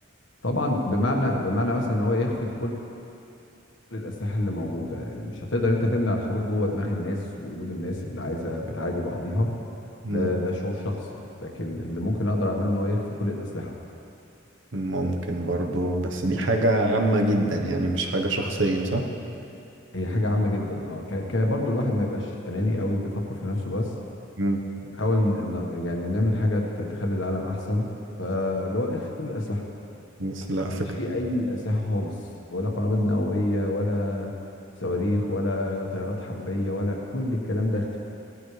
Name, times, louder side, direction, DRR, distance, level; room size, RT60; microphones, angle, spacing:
voice 1, 0.4-2.8 3.9-9.5 10.1-13.8 19.9-23.9 25.0-27.9 28.2-29.6 31.0-32.1 32.5-34.3 34.8-38.0, left 1 dB, 60° left, 0 dB, 1.6 m, -27 dB
voice 2, 14.7-19.1 24.4-24.6 30.2-30.9, right 1 dB, 65° right, 2 dB, 1.2 m, -25 dB
17.5 x 13.0 x 3.4 m, 2.8 s
head